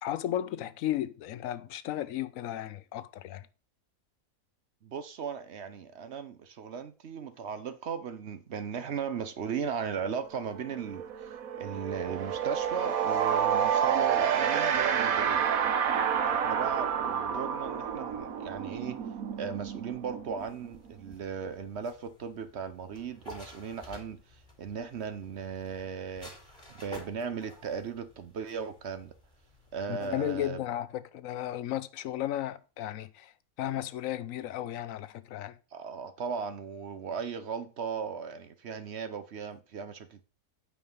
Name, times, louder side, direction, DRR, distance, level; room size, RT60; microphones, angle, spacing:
voice 1, 0.0-3.5 29.9-33.3 33.6-35.6, left 12 dB, 75° left, 0.9 m, -34 dB
voice 2, 4.8-15.4 16.2-19.0 19.4-26.3 26.7-29.1 29.7-30.6 35.7-40.2, right 6 dB, 55° right, 0.9 m, -37 dB
sound 1, 10.1-10.3 10.6-21.1, right 8 dB, 80° right, 1.4 m, -29 dB
sound 2, 20.4-30.5, left 1 dB, 15° left, 3.3 m, -52 dB
8.8 x 5.0 x 5.3 m
omnidirectional pair, 1.5 m